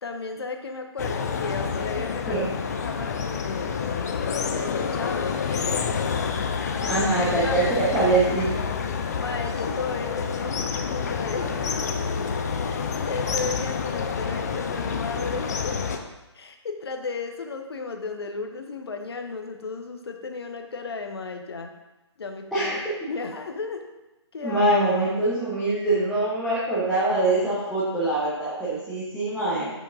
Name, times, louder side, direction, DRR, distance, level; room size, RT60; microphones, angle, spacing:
voice 1, 0.0-2.5 2.8-3.7 4.5-5.8 6.7-7.1 7.4-7.8 9.1-11.9 12.6-15.8 16.3-21.7 22.2-22.7 23.1-23.8 24.3-24.6, left 4 dB, 60° left, 5 dB, 0.8 m, -34 dB
sound 1, 1.0-16.0, left 6 dB, 35° left, 0.5 m, -28 dB
voice 2, 6.9-8.5 22.5-22.9 24.4-29.7, right 2 dB, ahead, -13 dB, 1.1 m, -23 dB
6.9 x 6.1 x 2.6 m, 1.0 s
figure-of-eight pair, 140°, 15 cm